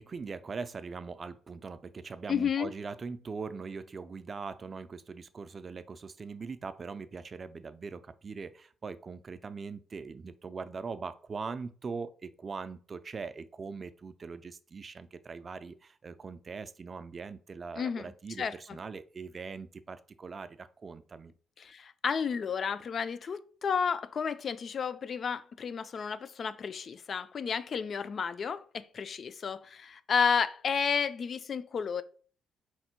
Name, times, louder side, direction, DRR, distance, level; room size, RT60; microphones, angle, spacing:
voice 1, 0.0-21.3, right 4 dB, 40° right, 0.3 m, -41 dB
voice 2, 2.3-2.7 17.8-18.1 18.4-18.8 21.6-32.0, left 6 dB, 50° left, 0.3 m, -32 dB
4.3 x 2.1 x 4.3 m
cardioid pair, 90°, 0 cm